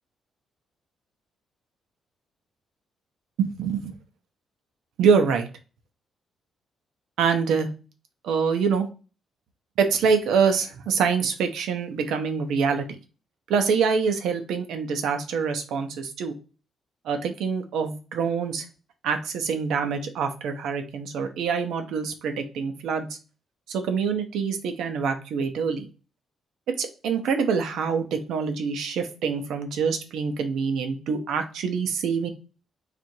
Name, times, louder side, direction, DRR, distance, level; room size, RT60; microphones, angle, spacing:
voice 1, 3.4-3.9 5.0-5.5 7.2-7.7 8.2-8.9 9.8-12.8 13.5-16.3 17.0-18.6 19.0-23.2 23.7-25.9 26.7-32.3, right 6 dB, 80° right, 6 dB, 0.7 m, -25 dB
4.3 x 2.5 x 2.7 m, 0.33 s
cardioid pair, 135°, 0 cm